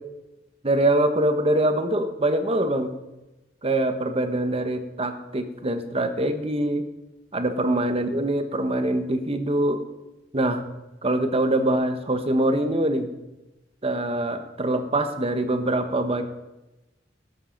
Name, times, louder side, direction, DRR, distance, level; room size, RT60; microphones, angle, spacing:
voice 1, 0.6-2.9 3.6-6.8 7.3-9.9 10.3-10.6 11.0-13.1 13.8-16.2, right 1 dB, 30° right, 8 dB, 1.0 m, -24 dB
13.0 x 13.0 x 5.2 m, 1.0 s
head